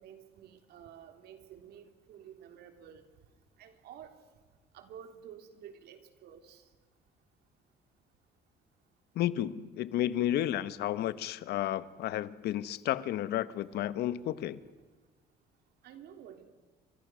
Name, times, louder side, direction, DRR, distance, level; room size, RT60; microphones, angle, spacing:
voice 1, 0.0-3.0 3.6-4.1 4.7-6.6 15.8-16.4, right 9 dB, 75° right, 7 dB, 3.4 m, -51 dB
voice 2, 9.1-14.6, left 12 dB, 75° left, 15 dB, 1.2 m, -32 dB
30.0 x 25.5 x 6.3 m, 1.3 s
cardioid pair, 110°, 17 cm